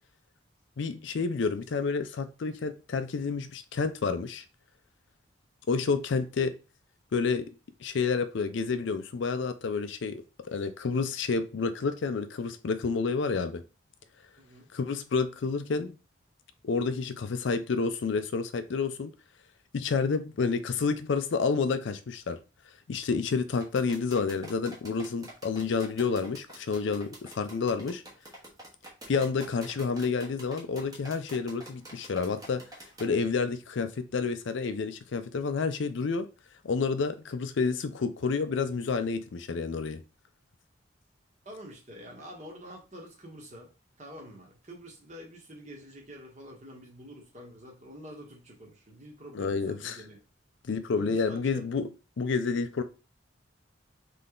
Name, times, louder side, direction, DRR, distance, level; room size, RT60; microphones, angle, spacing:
voice 1, 0.8-4.4 5.7-6.5 7.1-7.5 7.8-10.2 10.5-13.6 14.7-16.0 16.6-19.1 19.7-22.4 22.9-28.0 29.1-32.6 33.0-36.3 36.6-40.0 49.3-50.0 50.6-51.9 52.2-52.8, left 4 dB, 70° left, 0.4 m, -29 dB
voice 2, 14.4-14.7 41.4-43.7 44.0-50.2 51.0-51.7, equal, 35° right, 1.3 m, -47 dB
sound 1, 23.6-33.1, right 1 dB, 20° right, 1.1 m, -47 dB
3.8 x 3.3 x 3.8 m
head